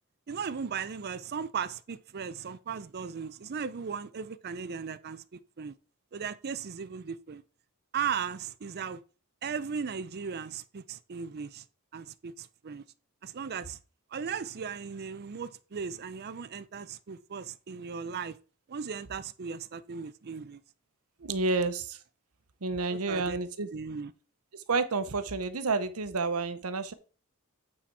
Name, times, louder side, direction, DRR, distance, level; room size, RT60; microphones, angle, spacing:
voice 1, 0.3-5.7 6.1-7.4 7.9-9.0 9.4-11.7 11.9-12.8 13.2-13.8 14.1-18.4 18.7-20.6 21.5-21.7 22.9-23.4 23.7-24.1, right 6 dB, 45° right, 0.5 m, -37 dB
voice 2, 21.2-22.0 22.6-23.7 24.5-26.9, right 3 dB, 80° right, 0.9 m, -30 dB
8.6 x 4.2 x 4.7 m
head